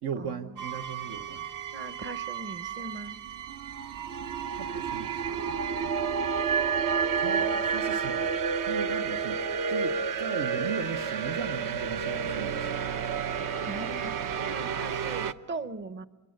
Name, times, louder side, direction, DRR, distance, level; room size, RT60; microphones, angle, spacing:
voice 1, 0.0-1.5 4.5-5.3 7.2-8.3 8.6-12.8, right 7 dB, 75° right, 4 dB, 1.3 m, -38 dB
sound 1, 0.6-15.3, right 6 dB, 60° right, 0.9 m, -30 dB
voice 2, 1.7-3.2 7.3-7.6 13.6-14.1 14.4-16.0, right 3 dB, 30° right, 12 dB, 0.9 m, -39 dB
26.5 x 23.0 x 6.7 m, 1.2 s
cardioid pair, 130°, 38 cm